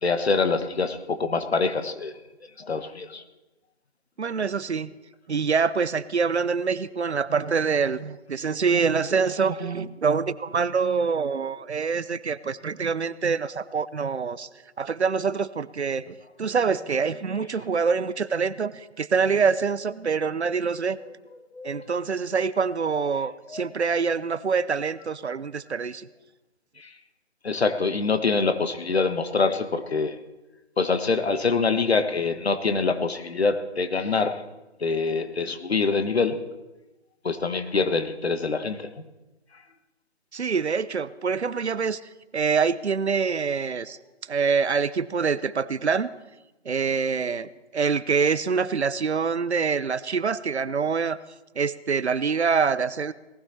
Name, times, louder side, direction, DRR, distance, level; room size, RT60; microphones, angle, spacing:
voice 1, 0.0-2.1 2.6-3.2 21.5-22.0 23.5-23.8 26.8-26.9 27.4-30.2 30.8-34.4 34.8-36.4 37.2-38.9, left 4 dB, 65° left, 9 dB, 1.5 m, -25 dB
voice 2, 4.2-4.9 5.3-14.5 14.8-21.0 21.6-26.1 40.3-42.0 42.3-44.0 44.3-46.1 46.6-51.2 51.6-53.1, right 5 dB, 70° right, 17 dB, 0.8 m, -25 dB
18.5 x 15.5 x 4.3 m, 1.0 s
figure-of-eight pair, 145°, 34 cm